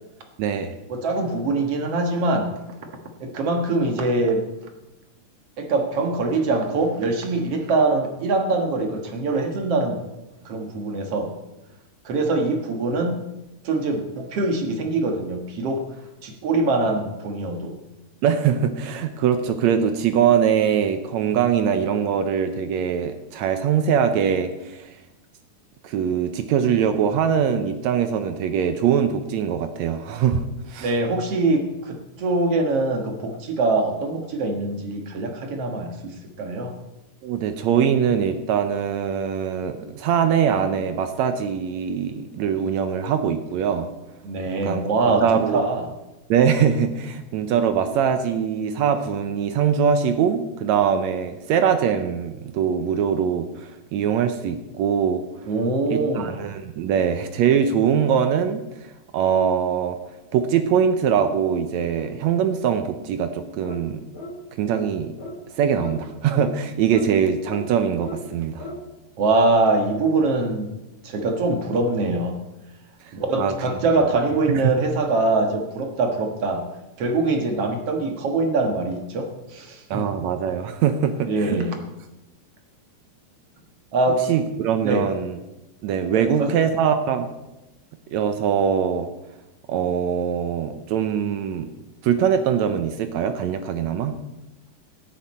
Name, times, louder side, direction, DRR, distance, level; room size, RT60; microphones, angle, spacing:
voice 1, 0.4-0.7 18.2-24.9 25.8-30.9 37.2-43.9 44.6-44.8 45.2-45.7 46.3-55.2 55.9-58.6 59.1-60.0 60.3-64.0 64.6-65.1 65.6-68.7 73.4-73.5 79.9-81.6 84.3-85.4 85.8-87.3 88.1-89.1 89.7-91.7 92.0-94.1, right 8 dB, 80° right, 8 dB, 1.6 m, -22 dB
voice 2, 0.9-2.6 3.2-4.5 5.6-10.0 10.4-11.3 12.0-13.2 13.6-15.9 16.2-17.8 30.8-36.8 44.2-45.8 55.5-56.3 69.2-70.7 71.0-72.4 73.1-76.6 77.0-80.1 81.3-81.8 83.9-84.2 84.8-85.1 86.1-86.5, right 2 dB, 50° right, 4 dB, 2.1 m, -23 dB
sound 1, 63.6-63.9 64.1-64.3 64.7-64.9 65.2-65.4 65.8-65.9 66.3-66.5 66.9-67.1 67.5-67.6 68.0-68.2 68.6-68.8, left 1 dB, 35° left, 3.9 m, -36 dB
17.5 x 10.5 x 4.3 m, 0.98 s
omnidirectional pair, 4.1 m